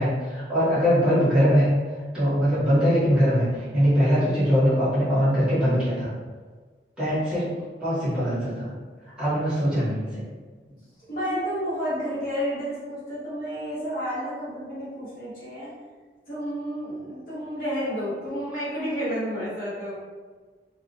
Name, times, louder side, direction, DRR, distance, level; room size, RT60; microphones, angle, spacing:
voice 1, 0.0-1.7 2.1-3.5 3.7-6.1 7.0-7.4 7.8-8.7 9.2-10.2, equal, 5° right, -13 dB, 1.0 m, -21 dB
voice 2, 11.1-15.7 16.3-20.0, equal, 50° left, -10 dB, 1.0 m, -30 dB
2.3 x 2.2 x 2.5 m, 1.4 s
head